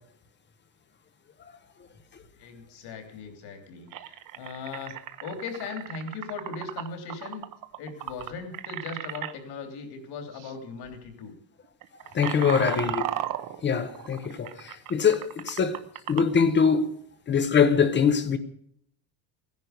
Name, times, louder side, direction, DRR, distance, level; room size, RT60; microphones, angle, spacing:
voice 1, 2.4-7.4 7.8-11.3 12.3-12.8, left 4 dB, 55° left, 3.2 m, -39 dB
sound 1, 3.3-3.4 3.9-9.3 10.3-10.5 10.8-11.1 11.6-16.4, right 12 dB, 45° right, 0.9 m, -36 dB
voice 2, 12.1-13.0 13.6-15.8 16.1-16.9 17.3-18.4, left 6 dB, 25° left, 0.8 m, -23 dB
17.0 x 10.5 x 6.6 m
cardioid pair, 175°, 45 cm